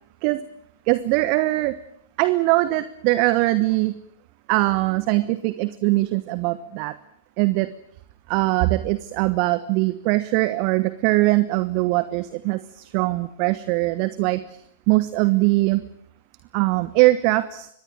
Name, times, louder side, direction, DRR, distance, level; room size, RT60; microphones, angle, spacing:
voice 1, 0.9-1.8 2.2-4.0 4.5-6.9 7.4-7.7 8.3-14.4 14.9-15.8 16.5-17.7, right 19 dB, 40° right, 15 dB, 1.1 m, -21 dB
24.5 x 20.0 x 8.9 m, 0.73 s
figure-of-eight pair, 110°, 0 cm